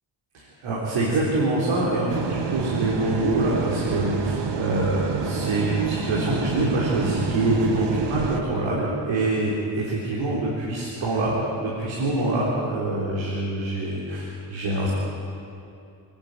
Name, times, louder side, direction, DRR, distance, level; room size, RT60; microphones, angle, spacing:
voice 1, 0.3-11.3 11.6-14.9, right 2 dB, 85° right, -5 dB, 4.0 m, -25 dB
sound 1, 2.1-8.4, right 6 dB, 65° right, 1.7 m, -28 dB
29.0 x 10.5 x 9.3 m, 2.6 s
supercardioid pair, 50°, 45 cm